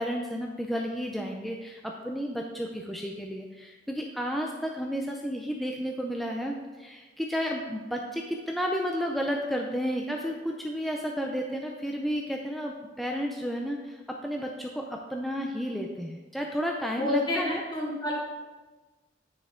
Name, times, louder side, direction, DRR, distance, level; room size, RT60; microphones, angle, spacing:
voice 1, 0.0-17.6, equal, ahead, 0 dB, 0.5 m, -32 dB
voice 2, 17.0-18.1, left 2 dB, 25° left, -4 dB, 2.1 m, -29 dB
9.4 x 6.6 x 3.7 m, 1.3 s
head